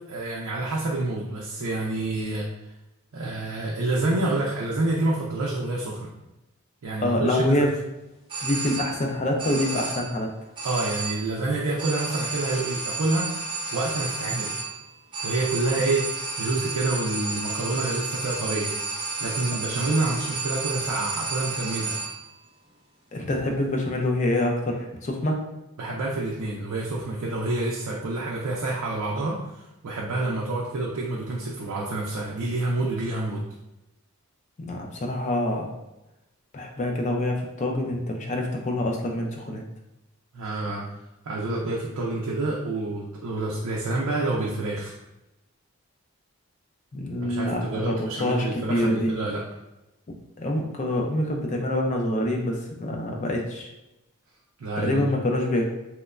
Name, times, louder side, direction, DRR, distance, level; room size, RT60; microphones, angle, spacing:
voice 1, 0.1-2.5 3.1-6.2 6.8-7.6 10.6-13.3 13.7-14.6 15.2-18.7 19.2-21.9 25.8-33.5 40.3-40.8 41.2-44.9 47.2-49.4 54.6-55.1, right 2 dB, 80° right, -3 dB, 0.4 m, -28 dB
voice 2, 7.0-7.8 8.4-10.3 23.1-25.4 34.6-35.7 36.5-39.6 46.9-49.1 50.4-53.7 54.8-55.7, left 1 dB, 30° left, 1 dB, 0.3 m, -26 dB
sound 1, 8.3-9.1 9.4-10.2 10.6-11.4 11.8-22.3, right 4 dB, 20° right, 0.5 m, -32 dB
3.0 x 2.1 x 2.3 m, 0.95 s
head